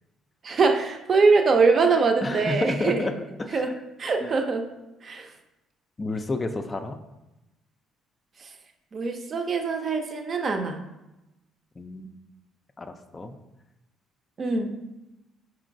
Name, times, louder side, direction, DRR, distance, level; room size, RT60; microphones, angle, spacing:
voice 1, 0.4-3.0 3.5-3.7 4.0-4.6 5.0-5.3 8.9-10.8 14.4-14.8, right 4 dB, 45° right, 5 dB, 0.5 m, -23 dB
voice 2, 2.2-3.7 4.2-4.4 6.0-7.0 11.8-12.1 12.8-13.3, left 2 dB, 30° left, 7 dB, 0.3 m, -31 dB
4.4 x 2.9 x 2.5 m, 0.97 s
hypercardioid pair, 55°, 0 cm